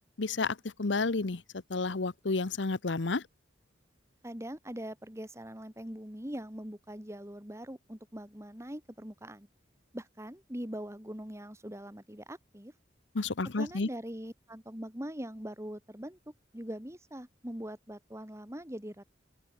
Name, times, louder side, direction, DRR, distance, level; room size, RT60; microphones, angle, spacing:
voice 1, 0.2-3.2 13.1-13.9, left 3 dB, 75° left, 0.9 m, -31 dB
voice 2, 4.2-9.5 9.9-12.7 13.6-19.0, equal, 15° right, 3.4 m, -42 dB
open air
head